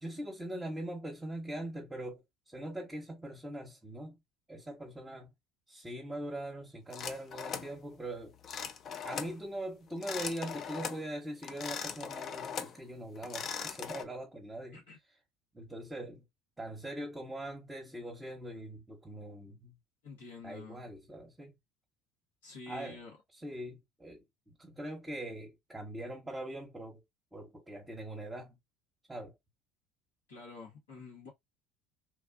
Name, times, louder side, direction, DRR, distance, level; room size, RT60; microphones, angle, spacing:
voice 1, 0.0-4.2 4.5-5.3 5.7-8.3 9.0-14.8 15.5-16.2 16.6-19.7 20.4-21.5 22.7-23.0 23.4-27.0 27.3-28.6 29.1-29.3, right 1 dB, 15° right, 1.1 m, -42 dB
sound 1, 6.9-7.7 8.4-9.3 9.9-11.0 11.4-12.8 13.1-14.0, left 7 dB, 45° left, 0.5 m, -40 dB
voice 2, 20.0-20.9 22.4-23.2 30.3-31.3, left 3 dB, 80° left, 1.7 m, -48 dB
3.1 x 2.3 x 2.4 m
figure-of-eight pair, 65°, 0 cm